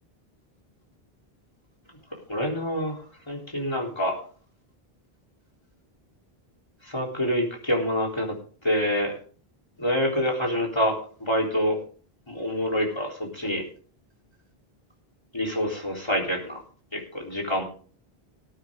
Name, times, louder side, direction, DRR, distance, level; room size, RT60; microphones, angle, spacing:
voice 1, 2.3-3.0 3.3-4.1 6.8-8.3 8.6-9.1 9.8-11.8 12.3-13.6 15.3-16.6 16.9-17.6, equal, 25° left, -1 dB, 3.9 m, -26 dB
19.5 x 9.0 x 3.7 m, 0.42 s
omnidirectional pair, 1.0 m